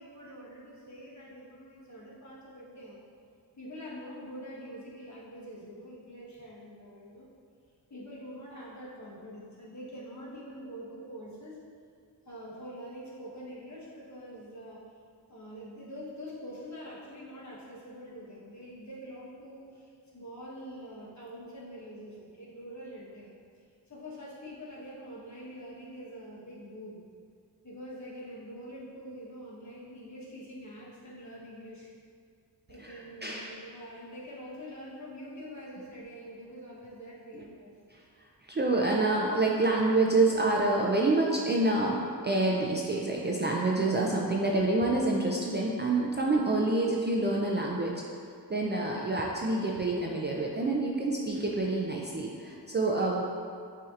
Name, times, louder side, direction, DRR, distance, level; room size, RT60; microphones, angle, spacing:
voice 1, 0.0-3.0 3.5-7.3 7.9-11.6 12.2-14.8 15.3-23.3 23.6-27.0 27.6-31.9 32.7-37.7 52.8-53.0, equal, 40° left, -6 dB, 1.2 m, -45 dB
voice 2, 33.2-33.6 37.3-37.4 37.9-38.0 38.4-47.9 48.5-53.2, right 2 dB, 25° right, -2 dB, 0.4 m, -27 dB
7.4 x 2.8 x 2.4 m, 2.2 s
wide cardioid pair, 90°, 41 cm